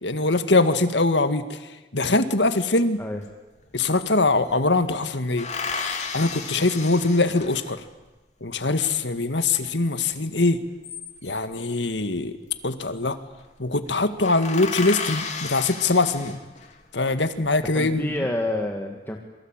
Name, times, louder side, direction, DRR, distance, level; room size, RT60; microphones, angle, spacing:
voice 1, 0.0-1.6 1.9-3.0 3.7-5.5 6.1-7.8 8.4-10.6 11.2-12.3 12.6-13.2 13.6-16.4 16.9-18.1, left 2 dB, 80° left, 10 dB, 1.9 m, -22 dB
sound 1, 3.2-3.3 3.6-4.6 5.4-7.9 10.5-11.5 12.7-13.1 13.4-13.5 13.8-13.9 14.2-16.8 17.3-18.0, left 5 dB, 40° left, 3.2 m, -33 dB
voice 2, 17.7-19.2, left 1 dB, 10° left, 2 dB, 1.9 m, -28 dB
27.5 x 23.5 x 9.0 m, 1.1 s
head